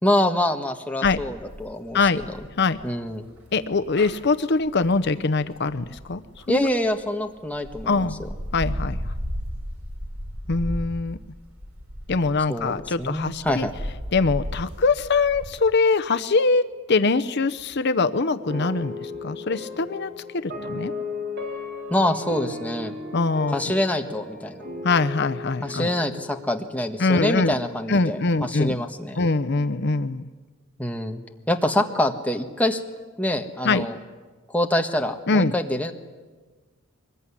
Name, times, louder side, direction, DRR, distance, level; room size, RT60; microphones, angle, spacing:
voice 1, 0.0-2.0 2.8-3.3 6.5-8.1 12.5-13.7 21.9-22.9 23.5-24.6 25.6-29.2 30.8-31.2 31.5-32.8 33.2-34.0 34.5-35.9, left 1 dB, 5° left, 4 dB, 1.5 m, -25 dB
sound 1, 1.0-7.0 7.5-15.5, equal, 85° right, 4.7 m, -35 dB
voice 2, 3.5-6.2 6.5-6.7 7.9-8.2 8.5-9.0 10.5-11.2 12.1-13.7 14.1-20.1 20.4-20.9 23.1-23.6 24.8-25.9 27.0-27.5 27.9-28.8 29.2-30.3 33.6-33.8 35.3-35.5, left 3 dB, 50° left, 10 dB, 0.7 m, -23 dB
sound 2, 18.5-27.6, left 3 dB, 50° right, 3.5 m, -36 dB
23.5 x 20.5 x 9.9 m, 1.4 s
head